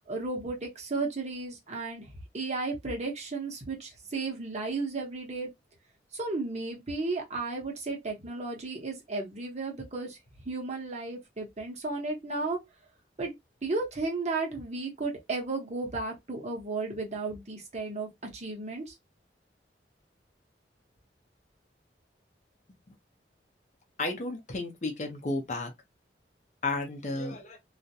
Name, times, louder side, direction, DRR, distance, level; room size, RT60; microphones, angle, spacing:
voice 1, 0.0-5.5 6.1-10.2 10.5-12.6 13.2-13.3 13.6-18.9, right 3 dB, 40° right, 0.9 m, -34 dB
voice 2, 24.0-25.7 26.6-27.6, left 2 dB, 40° left, 0.6 m, -32 dB
2.4 x 2.1 x 2.6 m
head